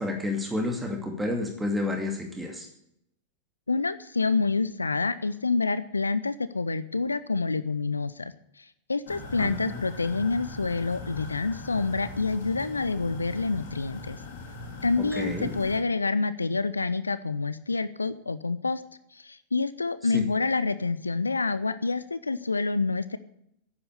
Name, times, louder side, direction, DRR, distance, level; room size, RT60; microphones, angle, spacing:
voice 1, 0.0-2.7 9.4-9.8 15.2-15.5, left 2 dB, 10° right, 3 dB, 2.5 m, -30 dB
voice 2, 3.7-14.2 14.8-18.8 19.1-23.2, left 4 dB, 80° left, 14 dB, 0.6 m, -27 dB
sound 1, 9.1-15.8, left 2 dB, 55° left, 3.2 m, -41 dB
11.5 x 8.9 x 9.5 m, 0.76 s
figure-of-eight pair, 90°, 0 cm